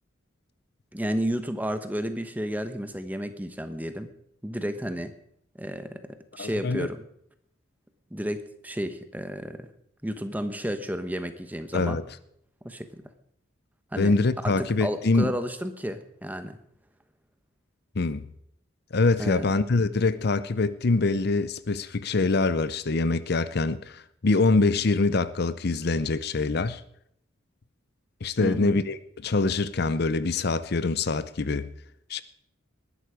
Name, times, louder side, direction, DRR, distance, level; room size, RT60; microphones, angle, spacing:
voice 1, 0.9-4.1 4.4-5.1 5.6-7.0 8.1-9.7 10.0-12.0 12.6-13.0 13.9-14.1 14.4-16.6 19.2-19.5 28.4-28.7, equal, 10° right, 1.0 m, -32 dB
voice 2, 6.4-6.9 11.7-12.0 14.0-15.3 18.0-18.3 18.9-26.8 28.2-31.7 32.1-32.2, left 3 dB, 55° left, 0.6 m, -24 dB
20.0 x 11.5 x 4.9 m
head